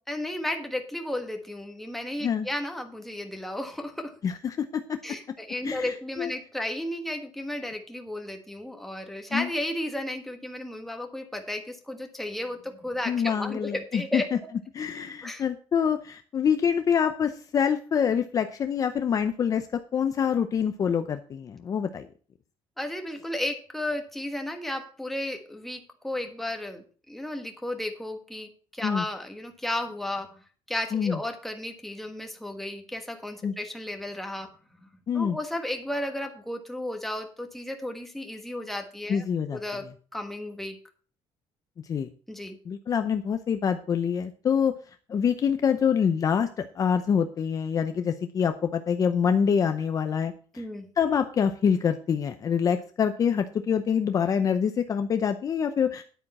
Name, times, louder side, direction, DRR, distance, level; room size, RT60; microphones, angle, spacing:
voice 1, 0.1-4.2 5.0-14.3 15.2-15.4 22.8-30.3 30.7-34.5 34.8-34.9 35.1-39.2 39.5-40.7 42.3-42.6 50.6-50.9, left 1 dB, ahead, 4 dB, 1.4 m, -34 dB
voice 2, 4.2-5.0 5.6-6.3 9.3-9.5 13.1-14.2 14.7-19.7 19.9-22.1 28.8-29.0 30.9-31.2 33.4-33.5 35.1-35.4 39.1-39.6 41.9-42.1 42.7-44.7 45.1-50.6 51.0-56.0, left 7 dB, 30° left, 8 dB, 0.6 m, -26 dB
10.5 x 8.8 x 4.2 m, 0.41 s
cardioid pair, 160°, 11 cm